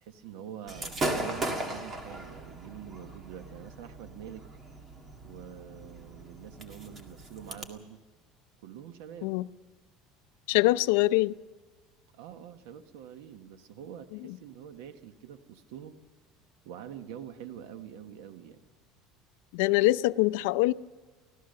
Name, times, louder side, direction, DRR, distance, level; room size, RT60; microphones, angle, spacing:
voice 1, 0.0-4.5 5.2-8.0 8.6-9.3 12.1-16.0 16.6-18.6, right 9 dB, 90° right, 9 dB, 1.2 m, -45 dB
Gunshot gunfire / Fireworks, 0.7-7.6, right 2 dB, 20° right, 1.9 m, -37 dB
voice 2, 10.5-11.3 19.5-20.7, left 19 dB, 85° left, 14 dB, 0.5 m, -24 dB
25.0 x 16.0 x 6.7 m, 1.4 s
cardioid pair, 165°, 0 cm